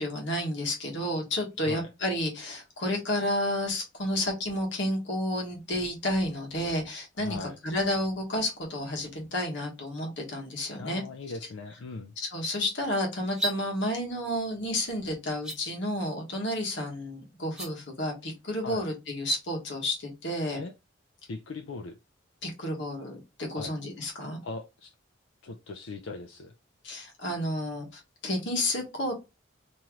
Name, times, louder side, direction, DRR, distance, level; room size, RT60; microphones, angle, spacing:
voice 1, 0.0-11.0 12.2-20.6 22.4-24.4 26.8-29.1, left 1 dB, 65° left, 1.4 m, -31 dB
voice 2, 7.2-7.6 10.8-12.1 18.6-18.9 20.6-20.7 21.3-22.0 23.5-23.8 24.4-24.9 25.4-26.5, left 3 dB, 90° left, 0.5 m, -39 dB
sound 1, 13.2-13.6 15.3-15.6 17.4-17.7, right 2 dB, 5° right, 0.8 m, -32 dB
3.0 x 3.0 x 3.6 m
head